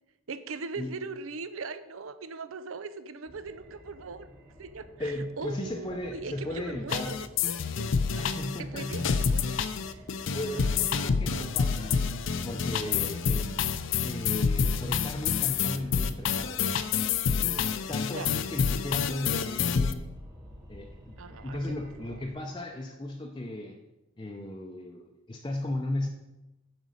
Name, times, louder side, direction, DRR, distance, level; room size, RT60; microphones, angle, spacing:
voice 1, 0.3-4.3 4.6-9.6 9.9-10.0 10.3-10.8 11.1-11.5 13.5-13.6 18.1-18.3 21.2-21.8 22.0-22.3, right 4 dB, 80° right, 13 dB, 0.6 m, -41 dB
sound 1, 3.3-22.3, equal, 20° right, 1.7 m, -50 dB
voice 2, 5.0-7.2 8.2-9.1 10.3-12.0 12.4-13.5 14.0-16.6 17.3-20.1 20.7-23.8 24.2-26.1, left 1 dB, 20° left, 1 dB, 0.6 m, -36 dB
sound 2, 6.9-19.9, left 6 dB, 65° left, 0.5 m, -28 dB
9.1 x 5.2 x 6.4 m, 0.97 s
head